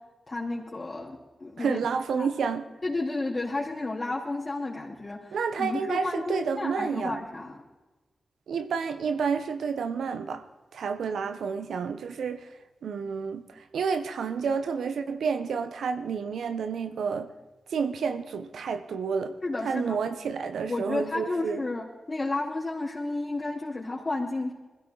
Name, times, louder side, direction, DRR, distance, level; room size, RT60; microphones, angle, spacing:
voice 1, 0.3-1.8 2.1-2.3 2.8-7.6 19.4-20.0 20.7-24.5, left 2 dB, 40° left, 4.1 m, -32 dB
voice 2, 1.6-2.6 5.3-7.2 8.5-10.5 10.7-12.5 12.8-17.3 17.7-19.3 19.6-21.6, right 6 dB, 85° right, 1.0 m, -30 dB
21.5 x 16.0 x 4.0 m
supercardioid pair, 40°, 0 cm